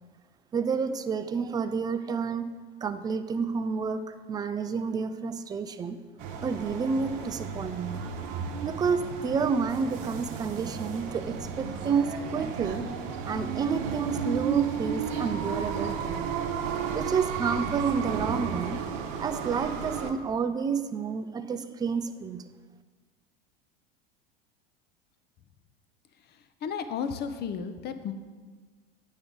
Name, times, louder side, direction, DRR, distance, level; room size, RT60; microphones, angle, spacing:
voice 1, 0.5-2.5 2.8-6.0 6.4-8.0 8.6-12.9 13.3-16.4 16.9-18.8 19.2-22.5, right 5 dB, 15° right, 10 dB, 0.3 m, -30 dB
sound 1, 6.2-20.1, right 6 dB, 55° right, 1.0 m, -33 dB
voice 2, 26.6-28.1, left 6 dB, 35° left, 10 dB, 0.6 m, -33 dB
8.9 x 5.3 x 3.7 m, 1.5 s
hypercardioid pair, 85°, 30 cm